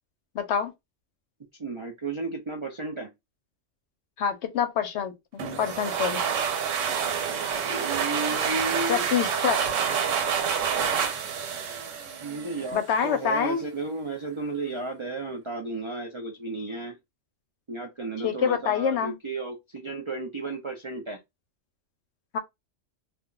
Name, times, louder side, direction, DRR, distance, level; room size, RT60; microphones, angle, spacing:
voice 1, 0.3-0.7 4.2-6.3 8.9-9.6 12.7-13.6 18.2-19.1 22.3-22.4, left 7 dB, 70° left, 0.8 m, -26 dB
voice 2, 1.6-3.1 7.6-9.0 12.2-17.0 17.7-21.2, right 3 dB, 55° right, 0.3 m, -33 dB
sound 1, 5.4-12.9, right 7 dB, 90° right, 1.0 m, -28 dB
2.4 x 2.2 x 3.7 m
omnidirectional pair, 1.3 m